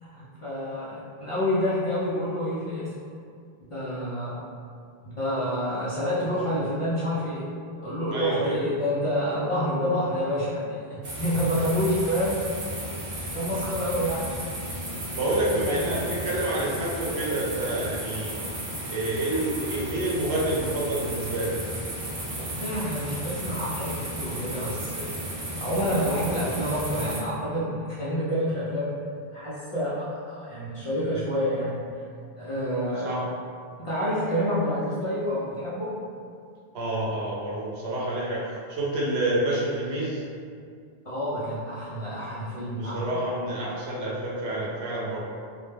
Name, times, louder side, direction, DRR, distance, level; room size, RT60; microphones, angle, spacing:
voice 1, 0.0-3.0 3.6-4.4 5.0-7.5 7.8-12.4 13.3-14.4 15.6-16.1 22.4-25.1 25.6-28.9 29.3-31.8 32.4-33.1 33.8-35.9 41.0-43.1, equal, 50° left, -10 dB, 0.4 m, -28 dB
voice 2, 8.1-8.6 15.1-18.4 18.9-21.5 33.0-33.2 36.7-38.4 38.7-40.2 42.8-45.2, right 1 dB, 85° right, -5 dB, 0.9 m, -28 dB
sound 1, 11.0-27.2, right 1 dB, 55° right, 0.7 m, -34 dB
2.3 x 2.1 x 3.2 m, 2.3 s
omnidirectional pair, 1.0 m